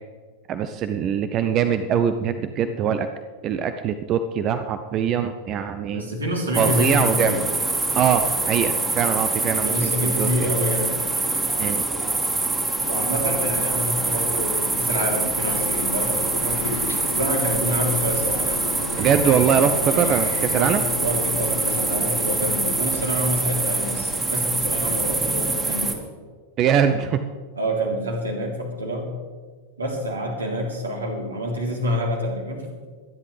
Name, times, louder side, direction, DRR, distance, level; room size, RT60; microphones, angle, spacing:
voice 1, 0.5-3.1 3.4-6.0 6.6-7.4 7.9-9.9 10.2-10.5 11.6-11.9 19.0-20.8 26.6-27.2, right 8 dB, 35° right, 10 dB, 0.7 m, -22 dB
voice 2, 5.9-7.4 9.6-11.0 12.8-16.6 17.0-18.6 19.8-20.1 20.5-26.0 27.5-29.1 29.8-32.7, equal, 75° right, -1 dB, 3.3 m, -27 dB
sound 1, 6.5-25.9, right 3 dB, 15° right, 2.1 m, -25 dB
sound 2, 15.3-22.8, left 3 dB, 75° left, 2.2 m, -33 dB
24.5 x 10.5 x 3.4 m, 1.5 s
figure-of-eight pair, 90°, 0 cm